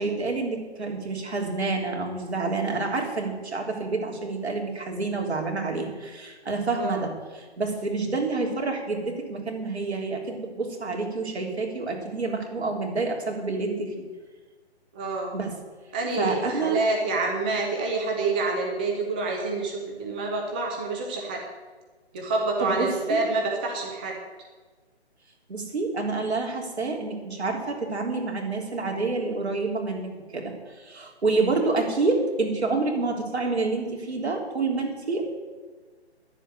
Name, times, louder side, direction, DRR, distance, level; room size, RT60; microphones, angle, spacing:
voice 1, 0.0-13.9 15.3-15.5 16.2-16.8 22.6-23.2 25.5-35.3, right 3 dB, 70° right, 1 dB, 3.5 m, -28 dB
voice 2, 14.9-15.4 15.9-21.4 22.1-24.2, right 3 dB, 10° right, 0 dB, 0.5 m, -27 dB
11.0 x 7.6 x 9.6 m, 1.3 s
figure-of-eight pair, 150°, 33 cm